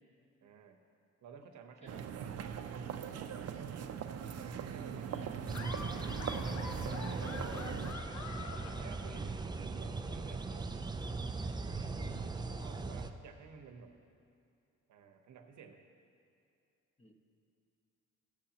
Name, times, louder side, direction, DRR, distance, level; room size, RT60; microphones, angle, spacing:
voice 1, 0.4-0.8 1.2-2.3 2.8-4.0 4.6-5.1 5.5-6.9 8.8-10.7 11.6-13.9 14.9-15.8, right 6 dB, 70° right, 4 dB, 1.0 m, -54 dB
sound 1, 1.8-7.9, right 8 dB, 55° right, 0.6 m, -41 dB
voice 2, 5.1-5.5 8.1-8.4 17.0-17.1, left 1 dB, 20° left, 2 dB, 1.2 m, -53 dB
Laughter, 5.5-9.6, left 5 dB, 65° left, 0.8 m, -47 dB
Forest birds wind, 5.5-13.1, right 3 dB, 15° right, 0.4 m, -39 dB
17.0 x 6.6 x 2.9 m, 2.6 s
cardioid pair, 90°, 30 cm